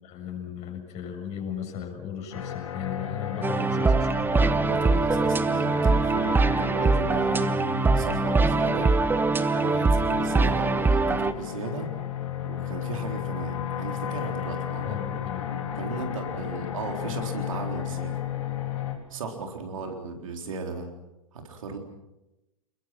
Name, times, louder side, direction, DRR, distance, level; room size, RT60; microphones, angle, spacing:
voice 1, 0.0-4.6 14.8-15.5 16.5-16.7 19.7-19.9, left 8 dB, 40° left, 1 dB, 6.9 m, -37 dB
sound 1, 2.3-18.9, left 8 dB, 65° left, 3.9 m, -34 dB
sound 2, 3.4-11.3, right 3 dB, 10° right, 1.0 m, -23 dB
voice 2, 4.6-7.4 8.0-8.9 9.5-11.9 12.4-15.0 15.8-18.2 19.1-20.9 21.3-21.8, right 4 dB, 70° right, 3 dB, 4.0 m, -36 dB
28.5 x 22.0 x 6.0 m, 0.96 s
figure-of-eight pair, 90°, 18 cm